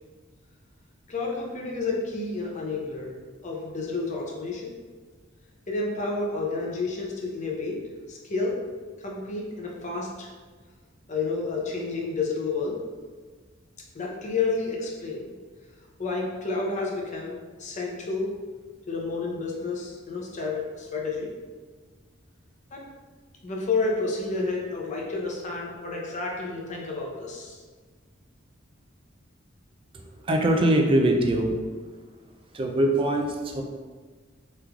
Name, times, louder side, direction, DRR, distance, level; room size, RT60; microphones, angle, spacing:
voice 1, 1.1-3.1 3.4-4.7 5.7-7.8 8.1-8.6 9.0-10.3 11.1-12.8 13.9-15.3 16.0-18.3 18.9-21.3 22.7-22.9 23.4-27.6, left 3 dB, 40° left, -2 dB, 0.6 m, -30 dB
voice 2, 29.9-31.6 32.5-33.6, right 1 dB, 30° right, 3 dB, 0.4 m, -23 dB
3.6 x 3.1 x 2.3 m, 1.4 s
head